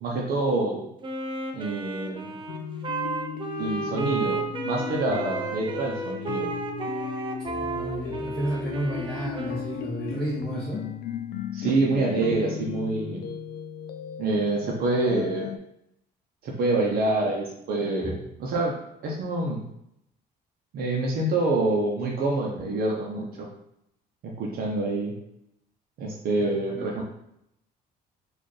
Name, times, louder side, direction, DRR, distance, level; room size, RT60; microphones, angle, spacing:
voice 1, 0.0-0.9 1.5-2.4 3.6-6.5 11.5-13.3 14.2-15.5 16.4-18.7 19.0-19.6 20.7-23.5 24.2-25.1 26.0-27.0, right 2 dB, 60° right, -1 dB, 0.7 m, -26 dB
Wind instrument woodwind instrument, 1.0-10.0, right 4 dB, 30° right, 0.5 m, -33 dB
sound 1, 2.5-15.6, left 7 dB, 70° left, 0.4 m, -36 dB
voice 2, 7.6-10.8 18.0-18.2 26.4-26.9, right 1 dB, 5° left, -10 dB, 1.1 m, -32 dB
4.1 x 2.5 x 3.2 m, 0.80 s
cardioid pair, 110°, 17 cm